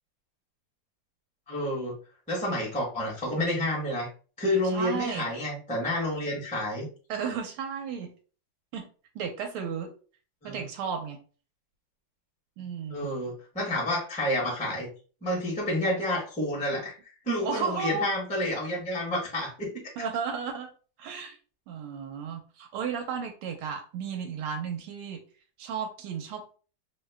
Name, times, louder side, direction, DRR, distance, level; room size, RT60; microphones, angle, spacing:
voice 1, 1.5-2.0 2.3-4.1 4.4-6.9 10.4-10.7 12.9-14.9 15.2-16.9 17.2-19.8, left 1 dB, 5° left, -3 dB, 0.7 m, -29 dB
voice 2, 4.7-5.3 7.1-8.1 8.7-8.9 9.1-9.9 10.4-11.2 12.6-13.1 17.4-18.2 20.0-20.7 21.0-21.4 21.7-25.2 25.6-26.4, right 6 dB, 85° right, 4 dB, 1.5 m, -33 dB
3.5 x 2.1 x 3.4 m, 0.38 s
omnidirectional pair, 2.4 m